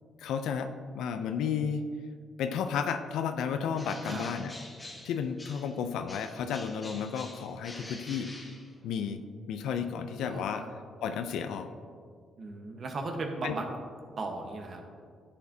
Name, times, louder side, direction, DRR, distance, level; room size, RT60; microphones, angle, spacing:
voice 1, 0.2-1.9 2.4-4.5 5.0-8.3 8.8-10.7 11.0-11.7 13.4-13.5, left 7 dB, 80° left, 8 dB, 0.4 m, -32 dB
Bird, 3.7-5.8 6.1-9.1, left 1 dB, 15° left, 1.4 m, -47 dB
voice 2, 10.1-10.7 12.4-13.7 14.2-14.8, right 3 dB, 50° right, 3 dB, 1.2 m, -37 dB
11.0 x 7.2 x 2.8 m, 2.1 s
cardioid pair, 90°, 0 cm